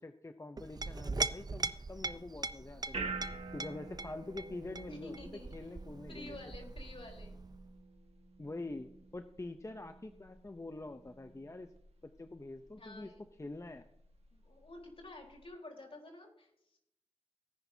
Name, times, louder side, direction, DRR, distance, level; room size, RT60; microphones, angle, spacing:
voice 1, 0.0-3.1 3.5-6.4 8.4-11.7 12.0-13.1 13.4-13.9, left 2 dB, 30° left, 8 dB, 0.7 m, -45 dB
Chink clink, 0.6-7.7, right 3 dB, 40° right, 0.5 m, -41 dB
sound 1, 2.0-15.5, right 4 dB, 75° right, 1.7 m, -49 dB
voice 2, 4.9-5.5 6.1-7.4 12.8-13.2 14.3-16.8, left 2 dB, 60° left, 0 dB, 4.0 m, -50 dB
18.0 x 10.5 x 2.8 m, 0.77 s
wide cardioid pair, 80°, 11 cm